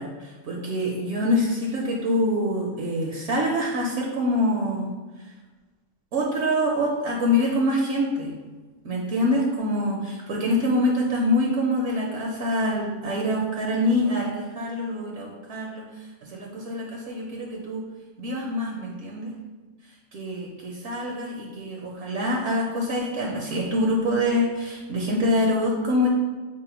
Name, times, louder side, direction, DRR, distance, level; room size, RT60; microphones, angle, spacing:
voice 1, 0.0-4.9 6.1-8.3 8.8-15.8 16.3-17.8 18.2-19.3 20.1-26.1, left 1 dB, 65° right, -2 dB, 0.9 m, -25 dB
4.7 x 2.1 x 4.3 m, 1.3 s
omnidirectional pair, 1.4 m